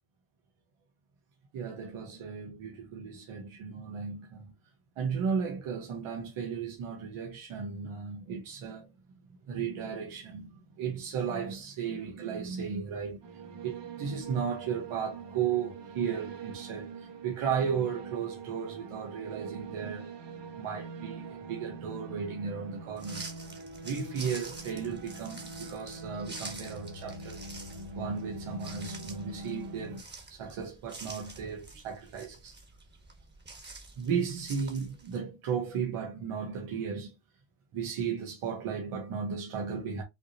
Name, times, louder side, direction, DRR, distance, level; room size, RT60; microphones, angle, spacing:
voice 1, 1.5-4.5 5.0-8.9 9.5-13.2 13.6-20.1 20.6-23.3 23.8-27.4 27.9-30.0 30.3-32.6 34.0-37.1 37.7-40.0, right 6 dB, 85° right, 1.3 m, -35 dB
sound 1, 13.2-30.0, right 3 dB, 60° right, 1.1 m, -43 dB
sound 2, 23.0-35.2, right 3 dB, 20° right, 1.5 m, -47 dB
5.7 x 3.0 x 2.8 m
cardioid pair, 130°, 49 cm